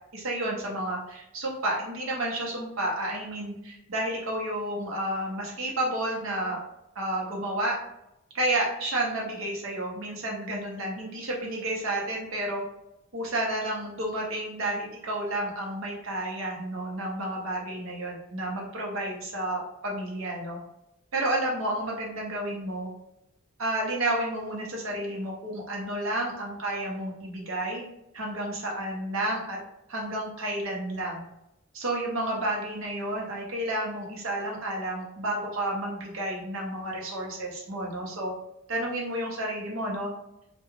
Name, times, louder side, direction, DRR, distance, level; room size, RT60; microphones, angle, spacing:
voice 1, 0.1-6.6 6.9-7.8 8.3-12.6 13.1-20.6 21.1-22.9 23.6-27.8 28.1-29.6 29.9-31.2 31.7-38.3 38.7-40.1, right 1 dB, 75° right, -2 dB, 0.8 m, -31 dB
2.3 x 2.3 x 3.0 m, 0.85 s
head